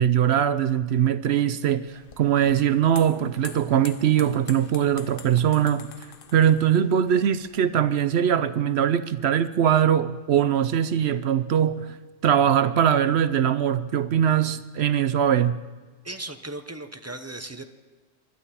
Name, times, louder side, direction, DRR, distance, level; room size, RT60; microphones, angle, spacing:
voice 1, 0.0-5.9 6.3-12.0 12.2-15.6, right 9 dB, 65° right, 13 dB, 0.8 m, -21 dB
sound 1, 1.9-7.6, left 6 dB, 50° left, 1.0 m, -46 dB
voice 2, 16.0-17.6, right 2 dB, 15° right, 8 dB, 0.5 m, -37 dB
21.0 x 12.5 x 4.2 m, 1.3 s
omnidirectional pair, 1.3 m